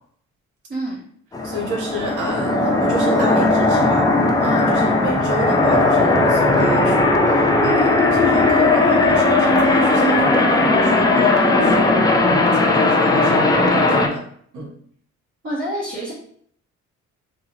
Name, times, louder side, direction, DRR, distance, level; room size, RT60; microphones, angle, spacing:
voice 1, 0.7-1.0 15.4-16.1, right 1 dB, 40° right, -8 dB, 1.0 m, -27 dB
sound 1, 1.3-14.1, left 2 dB, 15° left, 0.4 m, -17 dB
voice 2, 1.4-4.1 4.4-11.9 12.1-14.2 14.5-14.7, right 1 dB, 80° right, 0 dB, 0.9 m, -30 dB
2.8 x 2.3 x 2.7 m, 0.63 s
cardioid pair, 90°, 30 cm